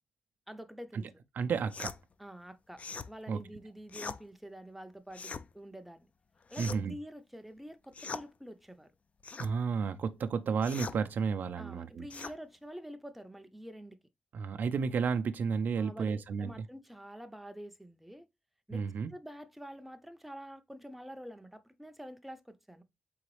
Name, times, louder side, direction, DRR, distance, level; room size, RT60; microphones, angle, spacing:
voice 1, 0.5-1.1 2.2-6.1 6.5-8.9 11.5-14.0 15.8-18.3 18.7-22.8, equal, 5° right, 0.5 m, -47 dB
voice 2, 1.4-2.0 3.3-3.4 6.6-6.9 9.4-12.3 14.3-16.5 18.7-19.1, right 5 dB, 70° right, 0.4 m, -32 dB
sound 1, 1.7-2.0 2.8-3.1 3.9-4.2 5.1-5.5 6.5-7.0 7.9-8.3 9.2-9.5 10.6-11.0 12.1-12.4, left 5 dB, 45° left, 0.4 m, -41 dB
4.0 x 3.9 x 3.1 m
cardioid pair, 85°, 3 cm